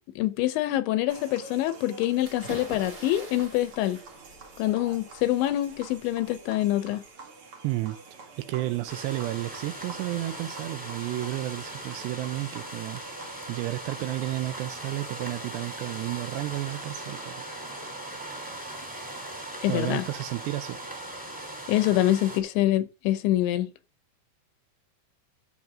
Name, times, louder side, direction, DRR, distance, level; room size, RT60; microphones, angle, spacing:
voice 1, 0.2-4.0 4.6-7.0 19.6-20.0 21.7-23.7, left 14 dB, 80° left, 3.2 m, -25 dB
sound 1, 1.1-18.6, right 3 dB, 45° right, 1.9 m, -48 dB
sound 2, 2.2-7.1, right 2 dB, 30° right, 2.1 m, -46 dB
voice 2, 7.6-13.0 13.5-17.4 19.7-20.9, right 17 dB, 80° right, 2.6 m, -32 dB
sound 3, 8.9-22.4, right 1 dB, ahead, 2.3 m, -39 dB
13.0 x 6.4 x 3.7 m
omnidirectional pair, 5.4 m